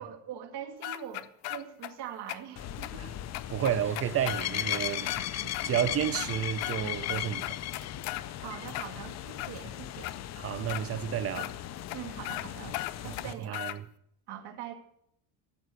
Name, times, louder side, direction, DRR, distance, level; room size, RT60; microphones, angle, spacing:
voice 1, 0.0-3.1 8.4-10.2 10.6-10.7 11.3-11.5 11.9-12.8 13.0-13.6 14.3-14.7, right 9 dB, 55° right, 2.3 m, -43 dB
sound 1, 0.8-1.9 2.3-2.4 2.8-2.9 3.3-5.2 5.5-5.7 6.0-6.8 7.1-8.2 8.7-9.5 10.0-10.1 10.7-10.8 11.3-11.5 11.9-12.0 12.2-12.5 12.7-13.8, left 17 dB, 90° left, 1.0 m, -36 dB
sound 2, 2.6-13.3, left 12 dB, 35° left, 0.4 m, -37 dB
Laughter, 3.3-7.2, right 1 dB, 5° right, 2.3 m, -50 dB
voice 2, 3.5-5.1 5.4-7.6 10.4-11.5 13.0-13.9, right 10 dB, 30° right, 0.5 m, -31 dB
14.0 x 7.8 x 8.1 m
cardioid pair, 160°, 47 cm